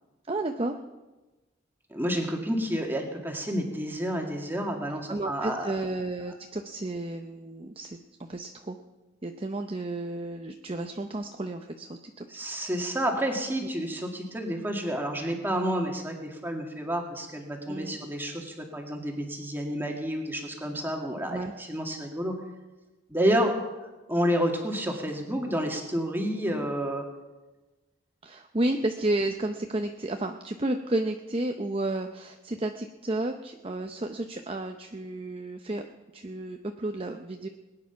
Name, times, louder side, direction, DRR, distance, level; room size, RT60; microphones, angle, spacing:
voice 1, 0.3-0.8 4.9-8.8 9.2-12.3 13.6-13.7 17.7-18.0 21.3-21.5 28.2-35.8 36.1-37.5, right 2 dB, 30° right, 5 dB, 0.7 m, -32 dB
voice 2, 1.9-5.7 12.3-22.4 23.1-27.1, equal, 10° right, 1 dB, 2.1 m, -30 dB
20.5 x 9.9 x 5.8 m, 1.1 s
head